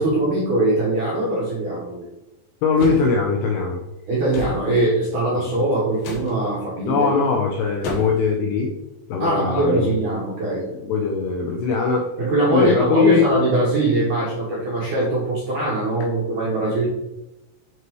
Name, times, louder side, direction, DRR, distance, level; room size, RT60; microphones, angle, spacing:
voice 1, 0.0-2.1 4.1-7.1 9.2-10.7 12.2-16.9, right 2 dB, 65° right, -6 dB, 2.0 m, -21 dB
voice 2, 2.6-3.8 6.9-8.7 9.1-10.0 10.8-12.1 12.5-13.2, left 5 dB, 80° left, 1 dB, 2.3 m, -20 dB
sound 1, 2.8-3.1 4.3-4.6 6.0-6.3 7.8-8.3, left 2 dB, 65° left, 2.8 m, -30 dB
7.5 x 5.5 x 3.1 m, 0.94 s
omnidirectional pair, 5.2 m